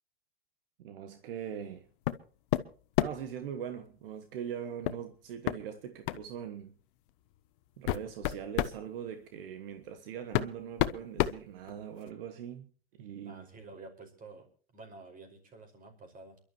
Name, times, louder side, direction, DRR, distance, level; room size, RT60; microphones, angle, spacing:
voice 1, 0.8-1.9 3.0-6.7 7.8-12.7 13.0-13.4, right 8 dB, 70° right, 1.4 m, -41 dB
sound 1, 2.1-2.2 2.5-3.3 4.9-5.0 5.5-5.6 6.1-6.3 7.1-7.2 7.7-8.8 9.8-9.9 10.3-12.1, left 15 dB, 60° left, 1.0 m, -30 dB
voice 2, 13.3-14.5 14.7-16.4, right 3 dB, 30° right, 5.3 m, -50 dB
28.0 x 12.0 x 3.1 m
hypercardioid pair, 105°, 30 cm